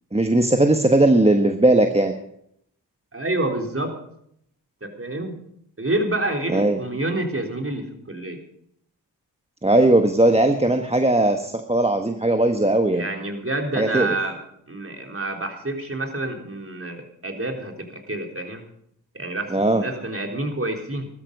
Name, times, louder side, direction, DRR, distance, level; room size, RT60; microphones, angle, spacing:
voice 1, 0.1-2.1 6.5-6.8 9.6-13.1 13.8-14.1 19.5-19.8, right 1 dB, 15° right, 5 dB, 1.3 m, -18 dB
voice 2, 3.1-3.9 4.8-5.3 5.8-8.4 12.9-14.4 14.7-18.6 19.1-21.1, right 2 dB, 30° right, 3 dB, 3.7 m, -28 dB
15.5 x 13.0 x 5.4 m, 0.71 s
cardioid pair, 45°, 44 cm